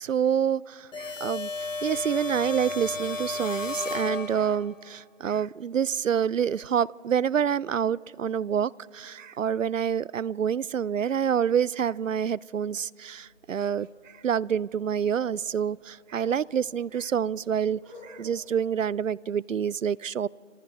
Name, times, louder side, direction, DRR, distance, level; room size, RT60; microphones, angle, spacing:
voice 1, 0.0-1.5 1.8-13.9 14.2-20.3, right 8 dB, 90° right, 25 dB, 0.5 m, -27 dB
sound 1, 0.9-4.8, left 3 dB, 80° left, 1.5 m, -33 dB
sound 2, 13.0-18.9, left 1 dB, 15° right, 3.3 m, -54 dB
28.5 x 26.5 x 3.5 m, 2.4 s
figure-of-eight pair, 180°, 38 cm